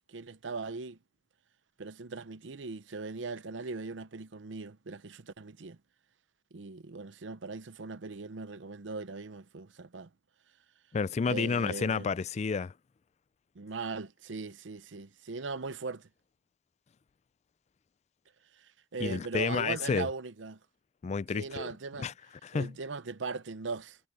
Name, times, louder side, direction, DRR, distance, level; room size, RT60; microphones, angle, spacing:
voice 1, 0.1-1.0 1.8-5.8 6.5-10.1 11.3-12.1 13.6-16.1 18.6-20.6 21.3-22.1 22.5-24.0, right 4 dB, 85° right, 0.7 m, -39 dB
voice 2, 10.9-12.7 19.0-20.1 21.0-21.7 22.0-22.1 22.4-22.7, left 5 dB, 35° left, 0.3 m, -30 dB
head